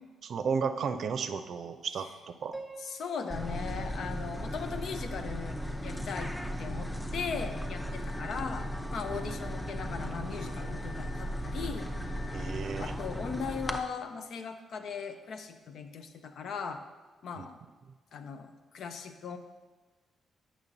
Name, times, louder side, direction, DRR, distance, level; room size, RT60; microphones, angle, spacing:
voice 1, 0.2-2.5 9.1-9.4 12.3-12.9 17.4-17.5, right 6 dB, 65° right, 9 dB, 0.5 m, -34 dB
Piano, 2.5-5.5, right 3 dB, 25° right, 0.8 m, -49 dB
voice 2, 2.8-6.3 6.6-12.2 12.8-16.8 17.2-17.6 18.1-19.4, left 6 dB, 65° left, 7 dB, 0.6 m, -39 dB
sound 1, 3.3-13.8, equal, 10° left, 0.7 m, -36 dB
Car / Alarm, 7.1-12.6, left 3 dB, 40° left, 1.0 m, -53 dB
8.3 x 6.2 x 4.0 m, 1.3 s
hypercardioid pair, 50°, 0 cm